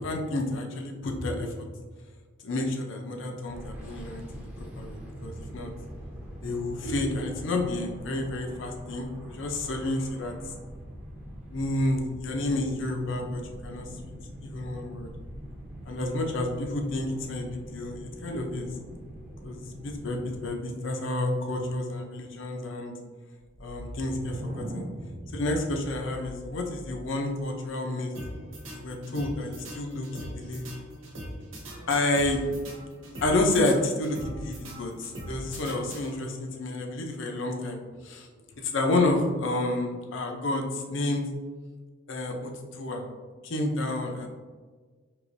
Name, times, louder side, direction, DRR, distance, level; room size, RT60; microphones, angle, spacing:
voice 1, 0.0-1.7 2.4-5.7 6.4-10.3 11.5-13.9 14.4-15.1 15.8-18.7 19.4-22.9 23.6-24.8 25.3-28.1 28.7-30.7 31.9-32.4 33.2-38.3 38.6-41.3 42.1-43.1 43.4-44.3, left 2 dB, 65° left, 3 dB, 0.6 m, -30 dB
sound 1, 3.5-20.5, equal, 5° right, 0.6 m, -43 dB
sound 2, 23.4-27.2, equal, 45° right, 1.0 m, -40 dB
sound 3, 28.1-36.5, equal, 80° right, 1.1 m, -41 dB
4.7 x 2.9 x 2.6 m, 1.4 s
head